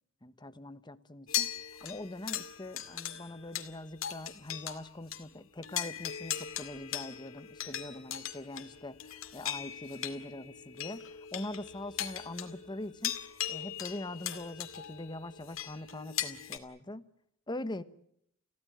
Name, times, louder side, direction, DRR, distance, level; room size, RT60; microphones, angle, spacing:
voice 1, 0.2-1.5 1.8-13.1 13.5-17.0 17.5-17.8, left 1 dB, 20° left, 12 dB, 1.2 m, -42 dB
sound 1, 1.3-4.8 5.1-5.3 5.6-16.6, left 11 dB, 80° left, 2.3 m, -39 dB
29.0 x 16.5 x 9.3 m, 0.72 s
head